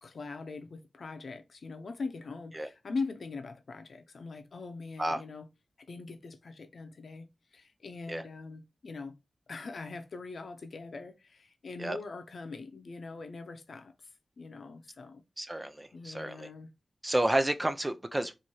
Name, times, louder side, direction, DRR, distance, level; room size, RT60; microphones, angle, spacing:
voice 1, 0.0-5.5 5.9-9.1 9.5-14.1 14.4-15.2 15.5-15.6 15.9-16.7, left 4 dB, 70° left, 0.8 m, -42 dB
voice 2, 15.4-16.5 17.0-18.3, right 1 dB, 20° right, 0.6 m, -30 dB
4.4 x 2.9 x 3.0 m
cardioid pair, 65°, 0 cm